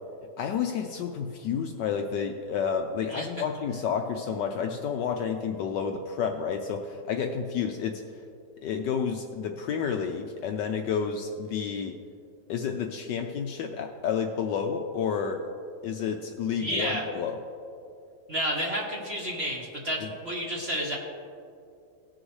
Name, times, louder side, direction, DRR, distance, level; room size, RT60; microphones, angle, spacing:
voice 1, 0.4-8.0 8.6-11.9 12.5-15.4 15.8-17.4 20.0-20.1, left 7 dB, 75° left, 4 dB, 1.0 m, -30 dB
voice 2, 16.6-17.1 18.3-21.0, equal, 40° right, -2 dB, 1.0 m, -30 dB
18.0 x 6.3 x 3.2 m, 2.5 s
omnidirectional pair, 2.3 m